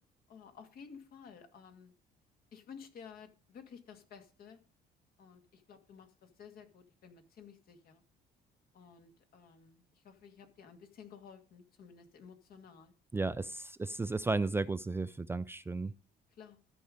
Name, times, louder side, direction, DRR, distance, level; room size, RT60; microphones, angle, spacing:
voice 1, 0.3-1.9 2.5-4.6 5.2-8.0 8.7-12.9 16.4-16.6, left 6 dB, 60° left, 2.1 m, -54 dB
voice 2, 13.1-15.9, right 3 dB, 15° right, 0.4 m, -34 dB
13.5 x 5.4 x 5.1 m
cardioid pair, 110°, 17 cm